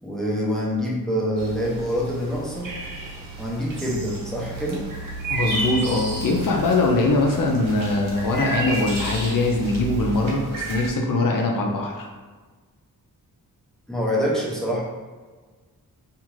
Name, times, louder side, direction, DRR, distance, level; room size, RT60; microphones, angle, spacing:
voice 1, 0.0-2.8 3.4-4.9 13.9-14.8, equal, ahead, -4 dB, 0.5 m, -26 dB
sound 1, 1.4-10.9, right 2 dB, 60° right, 0.7 m, -32 dB
voice 2, 5.3-12.0, left 2 dB, 65° left, 0 dB, 0.5 m, -22 dB
2.5 x 2.4 x 3.1 m, 1.4 s
wide cardioid pair, 145°, 37 cm